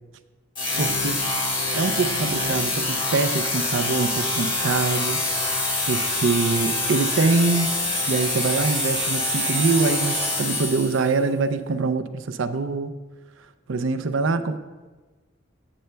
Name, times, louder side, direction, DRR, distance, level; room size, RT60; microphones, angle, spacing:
sound 1, 0.5-11.1, left 2 dB, 25° left, 1.4 m, -25 dB
voice 1, 0.8-1.2 1.7-5.2 5.9-7.8 8.1-12.9 13.7-14.6, right 4 dB, 75° right, 10 dB, 0.5 m, -24 dB
15.0 x 6.8 x 2.2 m, 1.3 s
head